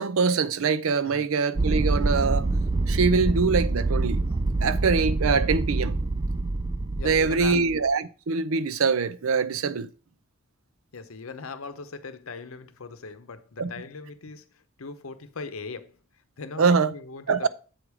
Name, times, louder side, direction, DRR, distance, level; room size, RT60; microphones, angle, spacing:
voice 1, 0.0-2.5 2.9-4.2 4.6-6.0 7.0-9.9 13.6-13.7 16.6-16.9 17.3-17.5, right 5 dB, 75° right, 0.5 m, -23 dB
sound 1, 1.6-7.8, right 2 dB, 20° right, 0.3 m, -26 dB
voice 2, 7.0-7.6 10.9-14.5 14.8-16.0 16.4-17.5, left 4 dB, 75° left, 0.8 m, -39 dB
7.7 x 4.8 x 4.8 m
head